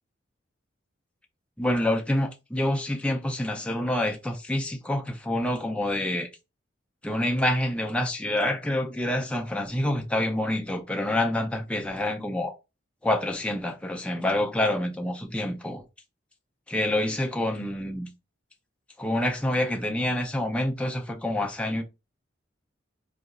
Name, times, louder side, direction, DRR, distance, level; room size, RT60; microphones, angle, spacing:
voice 1, 1.6-6.3 7.0-12.5 13.0-15.8 16.7-18.1 19.0-21.8, left 1 dB, 5° left, 0.4 m, -27 dB
4.0 x 2.7 x 2.4 m
head